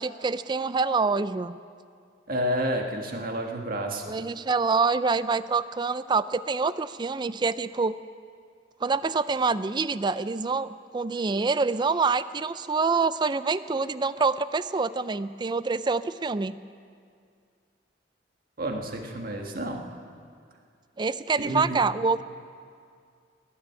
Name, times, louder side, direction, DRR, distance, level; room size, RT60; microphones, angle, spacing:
voice 1, 0.0-1.6 4.1-8.0 8.8-16.6 21.0-22.2, right 4 dB, 25° right, 15 dB, 0.4 m, -26 dB
voice 2, 2.3-4.0 18.6-19.8 21.4-21.8, equal, 50° right, 3 dB, 1.6 m, -30 dB
19.0 x 7.6 x 9.6 m, 2.3 s
head